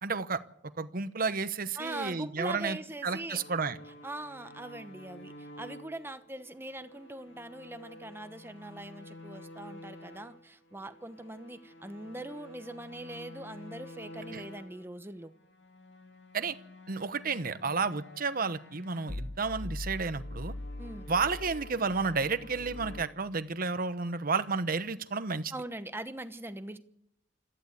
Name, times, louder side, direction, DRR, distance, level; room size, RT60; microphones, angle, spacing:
voice 1, 0.0-0.4 0.8-2.8 3.0-3.8 14.3-14.4 16.3-16.6 16.9-20.5 21.1-25.5, right 4 dB, 50° right, 12 dB, 1.0 m, -31 dB
voice 2, 1.8-3.4 4.0-15.3 20.8-21.1 25.5-26.8, right 1 dB, 15° right, 10 dB, 1.0 m, -42 dB
sound 1, 3.3-10.4 10.7-14.8 15.4-23.1, left 1 dB, 85° left, 2.2 m, -46 dB
22.0 x 14.5 x 8.2 m, 0.78 s
head